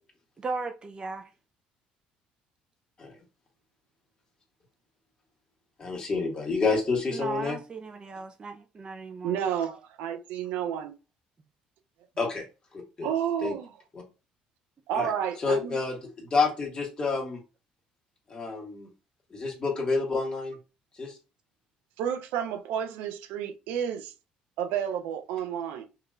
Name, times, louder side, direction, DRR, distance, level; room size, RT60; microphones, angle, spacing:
voice 1, 0.4-1.2 7.1-9.4, right 3 dB, 30° right, 0.6 m, -36 dB
voice 2, 5.8-7.6 12.2-12.4 12.7-13.1 13.4-13.5 13.9-14.0 14.9-15.1 15.4-17.4 18.3-18.9 19.3-20.6 21.0-21.1, left 4 dB, 30° left, 1.9 m, -28 dB
voice 3, 9.2-10.9 13.0-13.7 14.9-15.8 22.0-24.1 24.6-25.9, right 9 dB, 85° right, 0.7 m, -31 dB
5.6 x 3.0 x 2.5 m
cardioid pair, 100°, 3 cm